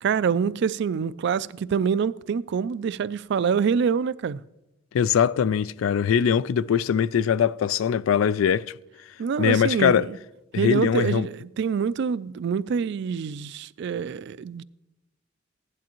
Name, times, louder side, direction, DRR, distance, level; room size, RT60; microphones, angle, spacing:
voice 1, 0.0-4.4 9.2-10.2 10.6-14.6, right 6 dB, 60° right, 0.3 m, -26 dB
voice 2, 4.9-8.7 9.4-10.1 10.5-11.3, left 8 dB, 80° left, 0.3 m, -22 dB
16.0 x 11.0 x 3.0 m
head